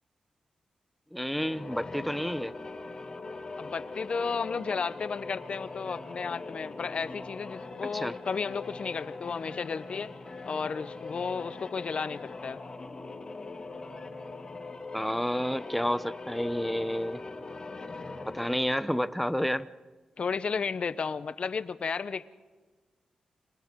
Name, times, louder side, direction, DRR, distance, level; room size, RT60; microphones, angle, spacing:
voice 1, 1.1-2.5 7.9-8.1 14.9-17.2 18.3-19.7, equal, ahead, 13 dB, 0.6 m, -30 dB
sound 1, 1.2-18.7, left 3 dB, 40° left, 2.1 m, -41 dB
voice 2, 3.6-10.1 10.5-12.6 20.2-22.3, left 5 dB, 55° left, 14 dB, 0.8 m, -33 dB
30.0 x 23.5 x 3.7 m, 1.3 s
cardioid pair, 85°, 2 cm